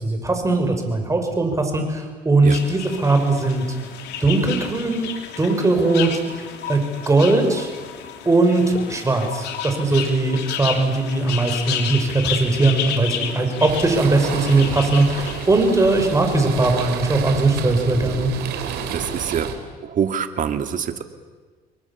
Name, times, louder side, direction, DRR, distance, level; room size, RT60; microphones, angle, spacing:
voice 1, 0.0-3.7 4.2-5.1 5.4-6.1 6.7-7.7 8.3-18.3, right 2 dB, 20° right, 4 dB, 5.5 m, -19 dB
sound 1, 2.5-16.5, left 9 dB, 80° left, 2.9 m, -32 dB
sound 2, 13.7-19.5, right 8 dB, 80° right, 3.6 m, -30 dB
voice 2, 18.9-19.5 19.8-21.0, right 8 dB, 50° right, 8 dB, 2.2 m, -25 dB
29.5 x 22.5 x 7.2 m, 1.4 s
cardioid pair, 110°, 17 cm